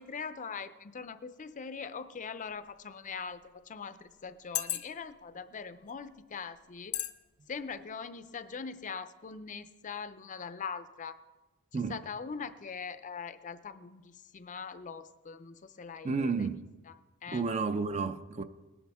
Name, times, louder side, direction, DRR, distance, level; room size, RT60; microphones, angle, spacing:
voice 1, 0.0-7.0 7.5-11.2 11.7-16.5 16.9-17.0 17.2-17.4, left 5 dB, 35° left, 0.5 m, -42 dB
sound 1, 2.4-2.6 3.4-3.5 4.3-5.2 5.9-6.1 6.9-7.2 7.6-7.7, left 14 dB, 75° left, 0.7 m, -34 dB
voice 2, 16.0-16.7 17.3-18.4, right 4 dB, 30° right, 0.5 m, -31 dB
19.0 x 11.0 x 3.5 m
head